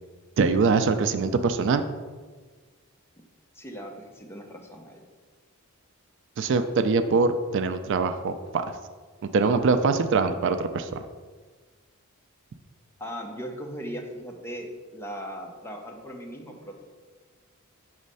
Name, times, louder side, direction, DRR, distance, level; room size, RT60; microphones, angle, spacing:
voice 1, 0.4-1.8 6.4-8.8 9.3-11.0, right 4 dB, 60° right, 9 dB, 0.3 m, -23 dB
voice 2, 3.5-5.0 13.0-16.8, equal, 10° left, 2 dB, 0.7 m, -38 dB
6.2 x 3.2 x 5.4 m, 1.4 s
head